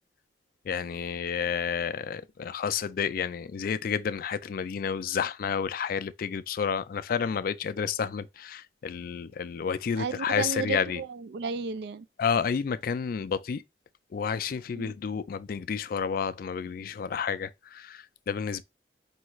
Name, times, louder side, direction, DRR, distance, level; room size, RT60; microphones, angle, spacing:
voice 1, 0.7-11.0 12.2-13.6 14.1-18.6, left 6 dB, 55° left, 0.3 m, -30 dB
voice 2, 10.0-12.1 14.8-15.0, right 5 dB, 65° right, 0.3 m, -33 dB
5.3 x 2.4 x 3.0 m
head